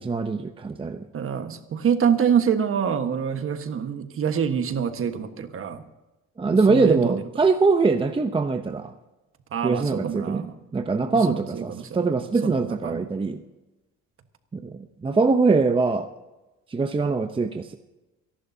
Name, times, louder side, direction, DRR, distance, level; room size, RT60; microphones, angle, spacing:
voice 1, 0.0-1.1 6.4-8.9 9.6-13.4 14.5-16.1 16.7-17.7, right 4 dB, 15° right, 7 dB, 0.7 m, -23 dB
voice 2, 1.1-5.8 6.5-7.2 9.5-10.6 11.1-12.1 12.4-13.1, right 7 dB, 45° right, 8 dB, 1.4 m, -26 dB
28.5 x 11.5 x 2.8 m, 1.1 s
cardioid pair, 130°, 30 cm